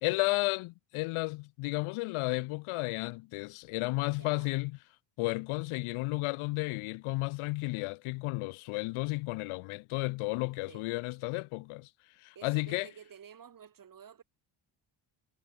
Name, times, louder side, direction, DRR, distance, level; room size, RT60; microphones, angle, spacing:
voice 1, 0.0-4.8 5.2-11.9 12.2-12.9, left 23 dB, 90° left, 0.6 m, -33 dB
voice 2, 4.1-4.5 10.7-10.9 12.3-14.2, right 8 dB, 40° right, 7.3 m, -52 dB
cardioid pair, 130°, 48 cm